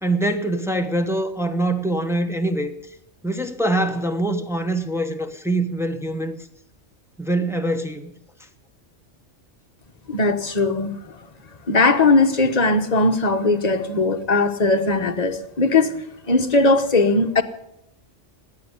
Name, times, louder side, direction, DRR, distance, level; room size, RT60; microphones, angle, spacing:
voice 1, 0.0-2.7 3.2-6.4 7.2-8.1, right 1 dB, ahead, 1.1 m, -24 dB
voice 2, 10.1-11.1 11.7-16.0 16.3-17.4, left 3 dB, 35° left, 1.1 m, -19 dB
18.0 x 9.3 x 8.2 m
omnidirectional pair, 1.2 m